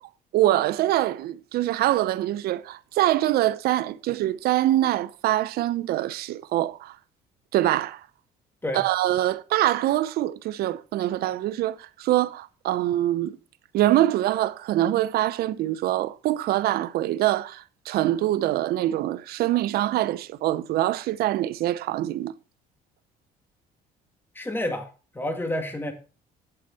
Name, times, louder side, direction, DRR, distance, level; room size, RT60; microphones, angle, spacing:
voice 1, 0.3-7.0 7.5-8.0 8.7-13.4 13.7-22.3, right 14 dB, 70° right, 0.7 m, -24 dB
voice 2, 24.4-24.9 25.1-25.9, left 1 dB, 15° left, 2.3 m, -29 dB
9.0 x 7.9 x 4.2 m
supercardioid pair, 85°, 16 cm